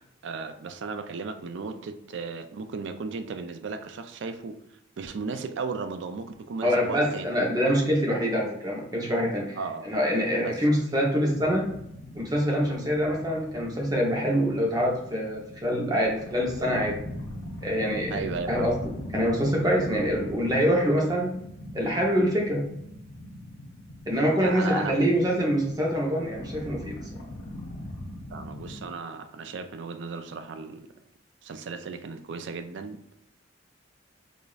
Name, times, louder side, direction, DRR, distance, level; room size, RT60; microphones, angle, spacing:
voice 1, 0.2-4.6 5.0-7.3 9.6-9.9 10.4-10.6 18.1-18.7 24.4-25.0 28.3-30.9 31.4-33.1, right 4 dB, 60° right, 0.4 m, -35 dB
voice 2, 6.6-9.6 9.8-11.7 12.1-17.0 17.6-18.8 19.1-21.3 21.7-22.6 24.1-27.0, equal, 20° right, 0.8 m, -25 dB
sound 1, 11.3-28.8, left 1 dB, 70° left, 0.8 m, -40 dB
4.9 x 2.6 x 2.4 m
head